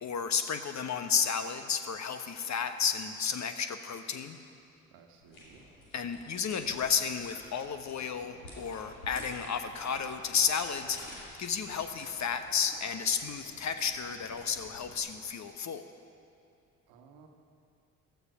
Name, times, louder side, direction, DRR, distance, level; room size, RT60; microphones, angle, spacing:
voice 1, 0.0-4.4 5.9-15.8, left 6 dB, 45° left, 8 dB, 1.1 m, -32 dB
voice 2, 4.9-5.6 16.9-17.3, right 6 dB, 70° right, 4 dB, 1.4 m, -57 dB
sound 1, 5.2-15.0, left 1 dB, 80° left, 2.7 m, -51 dB
15.0 x 12.0 x 5.6 m, 2.5 s
figure-of-eight pair, 45°, 40 cm